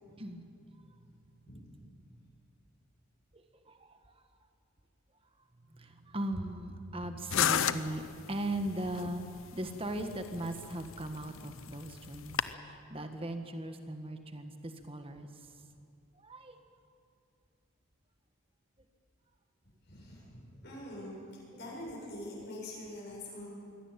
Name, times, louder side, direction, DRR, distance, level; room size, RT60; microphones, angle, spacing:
voice 1, 0.1-1.5 2.1-2.3 3.3-4.2 5.7-15.6 16.1-16.6 21.0-21.1, right 1 dB, 25° right, 7 dB, 1.5 m, -39 dB
sound 1, 7.3-12.5, left 9 dB, 75° left, 0.7 m, -34 dB
voice 2, 19.9-23.5, left 1 dB, 50° left, -3 dB, 7.6 m, -44 dB
23.5 x 16.5 x 9.1 m, 2.4 s
head